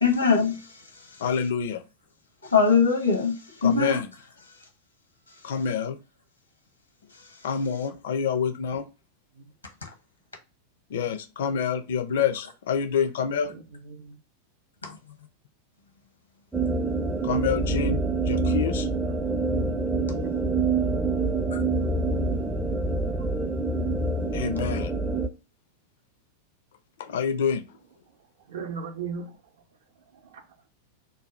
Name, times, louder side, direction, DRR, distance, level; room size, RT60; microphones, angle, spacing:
voice 1, 0.0-0.8 2.4-4.0 9.8-9.9 14.8-15.0, left 5 dB, 80° left, 0.7 m, -22 dB
voice 2, 1.2-1.8 3.6-4.1 5.4-6.0 7.4-8.8 10.9-13.5 17.2-18.9 24.3-24.9 27.0-27.7, left 6 dB, 60° left, 0.4 m, -27 dB
voice 3, 13.5-14.2 20.1-20.3 28.5-29.4 30.2-30.4, right 6 dB, 60° right, 0.5 m, -37 dB
sound 1, 16.5-25.3, right 3 dB, 5° right, 0.4 m, -26 dB
2.6 x 2.2 x 3.0 m
figure-of-eight pair, 90°, 0 cm